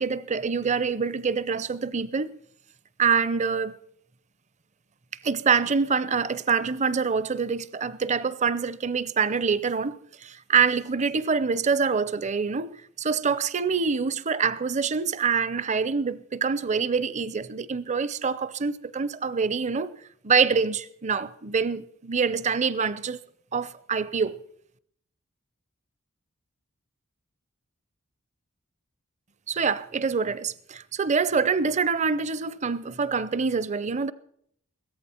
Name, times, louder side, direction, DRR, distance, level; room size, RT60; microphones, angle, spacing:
voice 1, 0.0-2.4 3.0-3.7 5.2-12.7 13.0-19.9 20.2-23.2 23.5-24.4 29.5-34.1, right 5 dB, 35° right, 0.6 m, -25 dB
16.5 x 14.0 x 4.4 m
head